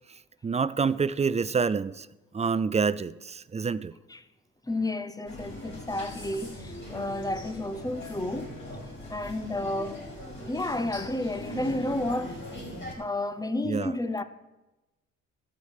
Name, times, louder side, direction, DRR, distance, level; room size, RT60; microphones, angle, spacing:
voice 1, 0.4-2.1 2.3-3.9 13.6-14.0, right 5 dB, 20° right, 0.4 m, -27 dB
voice 2, 4.7-8.5 9.1-10.0 10.4-12.4 12.9-14.2, left 1 dB, 10° left, 0.9 m, -31 dB
sound 1, 5.3-12.9, left 1 dB, 35° left, 5.6 m, -41 dB
13.5 x 6.6 x 7.2 m
cardioid pair, 90°, 30 cm